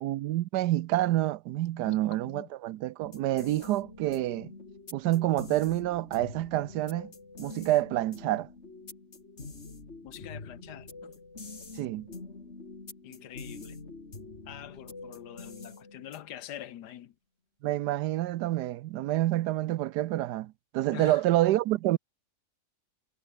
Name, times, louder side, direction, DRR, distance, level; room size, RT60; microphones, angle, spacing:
voice 1, 0.0-4.5 4.9-7.1 7.4-8.5 11.8-12.1 17.6-22.0, right 15 dB, 85° right, 1.2 m, -28 dB
voice 2, 1.7-2.5 10.0-11.2 13.0-13.8 14.5-17.1 20.9-21.2, left 11 dB, 80° left, 1.5 m, -45 dB
sound 1, 3.0-16.5, left 3 dB, 40° left, 3.1 m, -46 dB
omnidirectional pair, 1.8 m